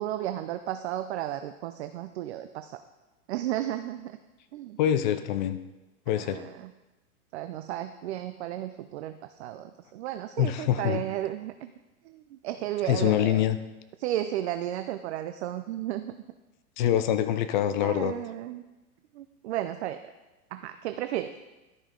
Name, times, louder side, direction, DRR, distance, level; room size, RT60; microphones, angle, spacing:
voice 1, 0.0-2.8 3.3-4.2 4.5-4.8 6.2-6.7 7.3-11.7 12.1-13.4 14.0-16.1 16.9-17.0 17.8-18.6 19.1-20.0 20.5-21.3, right 12 dB, 50° right, 9 dB, 0.4 m, -33 dB
voice 2, 4.8-5.6 6.1-6.4 10.4-11.0 12.9-13.6 16.8-18.1, left 11 dB, 35° left, 11 dB, 0.4 m, -25 dB
12.5 x 5.4 x 3.7 m, 1.1 s
hypercardioid pair, 135°, 45 cm